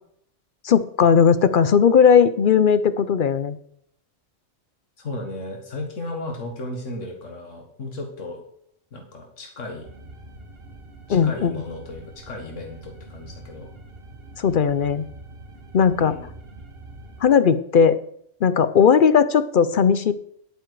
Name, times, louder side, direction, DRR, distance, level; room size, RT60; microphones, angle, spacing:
voice 1, 0.6-3.6 11.1-11.5 14.4-15.0 15.7-16.1 17.2-18.0 18.4-20.1, left 7 dB, 55° left, 14 dB, 0.7 m, -17 dB
voice 2, 5.0-8.4 8.9-9.9 11.1-13.7 16.0-16.3, left 2 dB, 85° left, 2 dB, 2.0 m, -35 dB
sound 1, 9.8-17.3, right 2 dB, 50° right, 1.5 m, -44 dB
10.5 x 9.0 x 4.7 m, 0.67 s
omnidirectional pair, 1.3 m